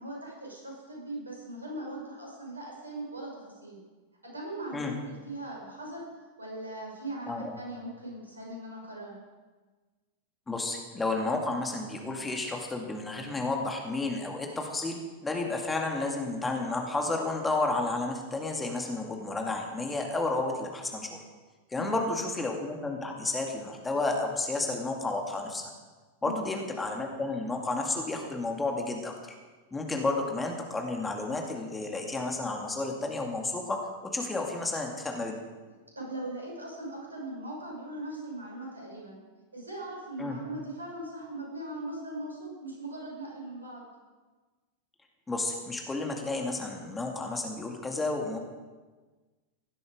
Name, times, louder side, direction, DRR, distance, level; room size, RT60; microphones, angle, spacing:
voice 1, 0.0-3.8 4.2-6.0 6.4-9.1 21.7-22.1 26.2-26.4 35.9-39.2 39.5-43.9, right 1 dB, 80° right, -2 dB, 6.1 m, -39 dB
voice 2, 7.3-7.6 10.5-21.2 21.7-25.6 26.2-29.1 29.7-35.4 40.2-40.4 45.3-48.4, left 2 dB, 10° left, 2 dB, 2.2 m, -31 dB
16.5 x 12.5 x 5.1 m, 1.3 s
figure-of-eight pair, 90°, 0 cm